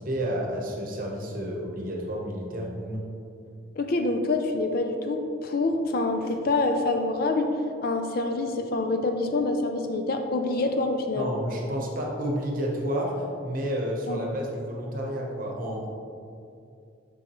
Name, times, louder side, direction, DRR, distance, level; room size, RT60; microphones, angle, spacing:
voice 1, 0.0-3.1 11.1-15.9, equal, 45° right, -1 dB, 1.0 m, -30 dB
voice 2, 3.8-7.5 7.8-11.3 14.1-14.2, left 2 dB, 50° left, 5 dB, 0.5 m, -26 dB
7.0 x 5.4 x 3.0 m, 2.5 s
head